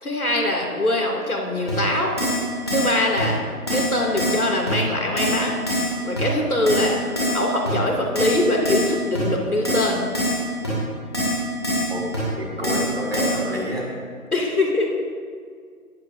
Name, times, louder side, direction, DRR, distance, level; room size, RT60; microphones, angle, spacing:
voice 1, 0.0-2.1 2.7-3.4 3.7-5.6 6.0-7.0 7.3-10.1 14.3-15.0, left 1 dB, 70° left, 0 dB, 2.7 m, -22 dB
Keyboard (musical), 1.7-1.8 2.2-2.4 2.7-2.9 3.2-3.3 3.7-3.9 4.2-4.4 4.7-4.8 5.2-5.4 5.7-5.9 6.2-6.3 6.7-6.9 7.2-7.4 7.6-7.7 8.1-8.4 8.6-8.9 9.1-9.2 9.6-9.9 10.1-10.4 10.6-10.7 11.1-11.4 11.6-11.9 12.1-12.2 12.6-12.9 13.1-13.4, left 1 dB, 15° left, 2.4 m, -23 dB
voice 2, 12.4-13.8, equal, 40° right, -4 dB, 2.7 m, -28 dB
18.0 x 13.0 x 2.7 m, 2.1 s
figure-of-eight pair, 170°, 45 cm